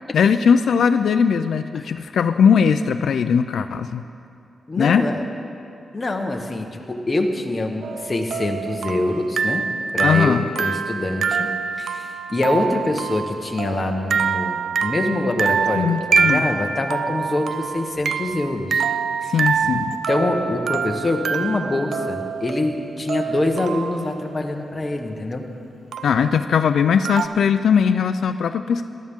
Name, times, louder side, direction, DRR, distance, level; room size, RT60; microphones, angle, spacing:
voice 1, 0.1-4.0 4.8-5.1 10.0-10.5 15.8-16.5 19.3-19.9 26.0-28.9, left 6 dB, 80° left, 9 dB, 0.4 m, -19 dB
voice 2, 4.7-5.2 5.9-9.6 9.9-11.5 11.8-18.8 19.2-19.3 19.6-19.7 20.1-25.4, left 2 dB, 20° left, 2 dB, 1.1 m, -25 dB
sound 1, 7.8-24.2 25.9-26.4 27.0-27.3, right 6 dB, 65° right, 0.4 m, -25 dB
19.0 x 13.0 x 3.6 m, 2.5 s
wide cardioid pair, 155°, 0 cm